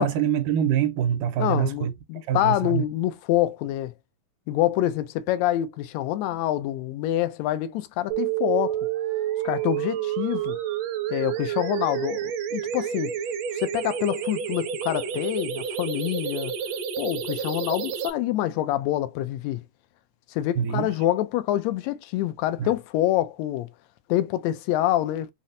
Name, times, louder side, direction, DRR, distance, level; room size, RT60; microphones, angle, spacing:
voice 1, 0.0-1.9 2.3-2.8 20.6-21.0 22.6-22.7, right 9 dB, 90° right, 2.2 m, -25 dB
voice 2, 1.4-3.9 4.5-8.8 9.4-10.6 11.1-13.1 13.5-16.5 17.0-19.6 20.3-23.7 24.1-25.3, left 13 dB, 80° left, 1.6 m, -26 dB
sound 1, 8.1-18.1, right 9 dB, 75° right, 1.6 m, -29 dB
5.6 x 2.0 x 2.6 m
omnidirectional pair, 3.5 m